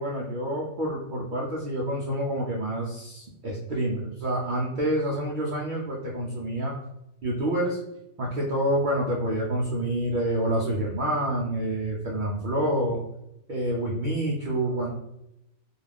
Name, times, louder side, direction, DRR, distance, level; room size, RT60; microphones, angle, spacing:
voice 1, 0.0-6.7 7.2-7.8 8.2-13.0 13.5-14.9, right 1 dB, 85° right, -4 dB, 0.4 m, -27 dB
2.4 x 2.3 x 3.3 m, 0.85 s
omnidirectional pair, 1.5 m